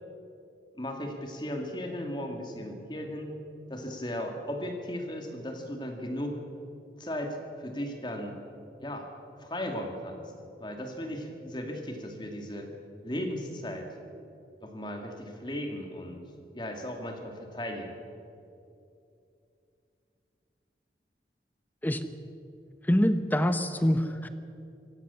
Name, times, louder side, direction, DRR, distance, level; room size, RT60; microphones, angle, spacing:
voice 1, 0.8-3.3 3.7-6.4 7.0-8.4 8.8-9.1 9.4-10.2 10.6-12.7 13.0-13.9 14.6-16.2 16.5-18.0, equal, 25° left, 3 dB, 2.3 m, -36 dB
voice 2, 22.9-24.3, equal, 10° left, 10 dB, 0.9 m, -25 dB
26.0 x 15.5 x 7.0 m, 2.7 s
head